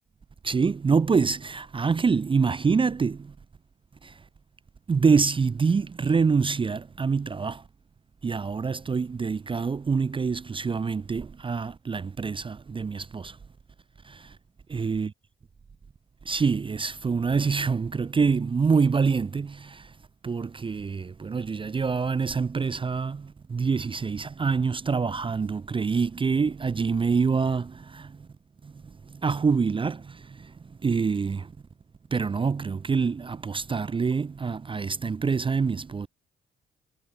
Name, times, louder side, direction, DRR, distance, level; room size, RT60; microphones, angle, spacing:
voice 1, 0.4-3.3 4.0-4.2 4.9-7.6 8.2-13.4 14.0-14.4 14.7-15.1 16.3-19.9 20.2-28.3 28.6-30.5 30.8-31.5 32.1-36.1, right 5 dB, 25° right, 0.6 m, -26 dB
cardioid pair, 90°, 20 cm